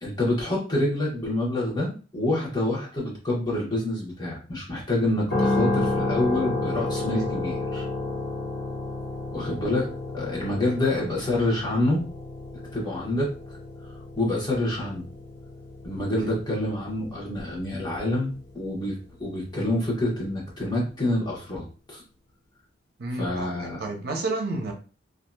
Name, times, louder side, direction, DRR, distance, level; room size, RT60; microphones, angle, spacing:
voice 1, 0.0-7.8 9.3-9.9 10.1-12.0 12.7-13.3 14.2-15.0 15.8-22.0 23.2-23.8, left 1 dB, 25° left, -4 dB, 1.0 m, -27 dB
sound 1, 5.3-19.3, left 2 dB, 60° left, 0.7 m, -31 dB
voice 2, 23.0-24.7, right 2 dB, 60° right, 2 dB, 0.7 m, -31 dB
2.7 x 2.4 x 2.2 m, 0.36 s
head